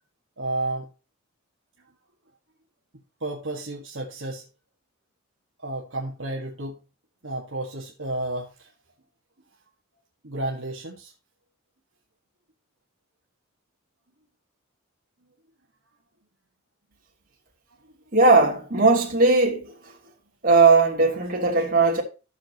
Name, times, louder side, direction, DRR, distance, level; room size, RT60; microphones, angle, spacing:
voice 1, 0.4-0.9 3.2-4.4 5.6-6.8 7.2-8.7 10.2-11.1, right 2 dB, 60° right, 1.7 m, -31 dB
voice 2, 18.1-19.9 20.4-22.0, right 3 dB, 40° right, 3.1 m, -18 dB
14.0 x 7.0 x 3.0 m
head